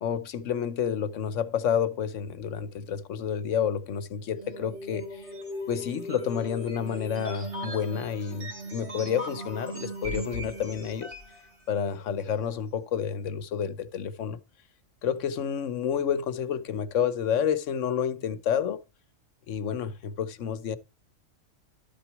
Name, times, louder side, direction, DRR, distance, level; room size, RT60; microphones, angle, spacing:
voice 1, 0.0-5.3 5.7-11.1 11.7-14.4 15.0-18.8 19.5-20.8, left 8 dB, 70° left, 1.1 m, -29 dB
sound 1, 4.2-11.4, equal, 60° right, 3.3 m, -38 dB
12.0 x 6.0 x 4.6 m
omnidirectional pair, 1.3 m